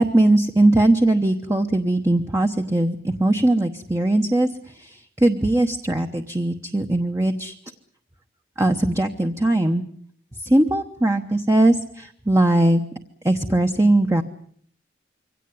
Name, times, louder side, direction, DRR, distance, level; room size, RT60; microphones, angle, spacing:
voice 1, 0.0-7.5 8.6-9.8 10.4-12.8 13.2-14.2, right 1 dB, 15° right, 5 dB, 1.0 m, -20 dB
24.0 x 17.5 x 9.6 m, 0.63 s
head